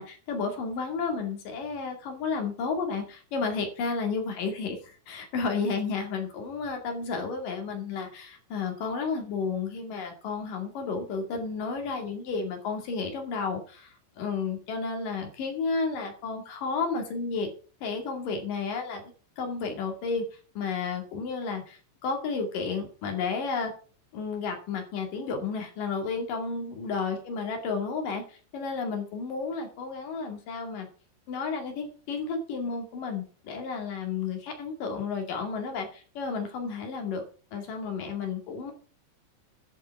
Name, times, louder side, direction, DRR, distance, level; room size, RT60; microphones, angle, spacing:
voice 1, 0.0-17.5 17.8-20.2 20.5-23.7 24.1-30.9 31.3-37.2 37.5-38.7, left 4 dB, 50° left, 4 dB, 3.3 m, -32 dB
11.5 x 6.5 x 5.8 m, 0.39 s
omnidirectional pair, 6.0 m